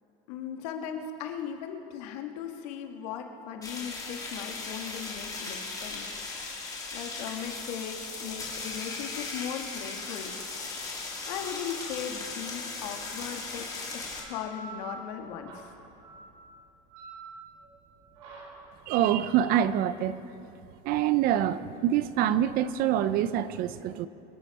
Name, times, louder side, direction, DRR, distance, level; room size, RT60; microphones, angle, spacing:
voice 1, 0.3-6.1 6.9-10.4 11.3-15.7, left 8 dB, 85° left, 4 dB, 1.7 m, -38 dB
sound 1, 3.6-14.2, left 3 dB, 20° left, 2.8 m, -37 dB
sound 2, 14.0-23.2, right 3 dB, 80° right, 4.4 m, -48 dB
voice 2, 18.9-20.2 20.8-24.1, right 11 dB, 50° right, 14 dB, 0.6 m, -25 dB
25.0 x 9.8 x 4.8 m, 2.8 s
cardioid pair, 145°, 19 cm